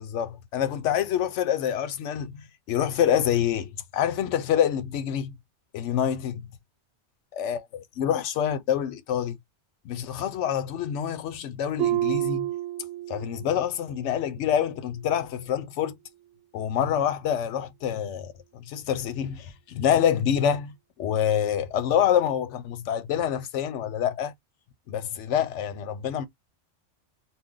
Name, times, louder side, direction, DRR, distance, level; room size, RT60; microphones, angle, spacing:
voice 1, 0.0-5.3 5.7-6.5 7.3-9.4 9.8-12.5 13.1-16.0 16.5-24.3 24.9-26.3, left 9 dB, 90° left, 0.9 m, -26 dB
Harp, 11.8-13.6 13.9-14.3 14.9-15.0, right 14 dB, 65° right, 0.9 m, -29 dB
2.6 x 2.2 x 3.6 m
omnidirectional pair, 1.2 m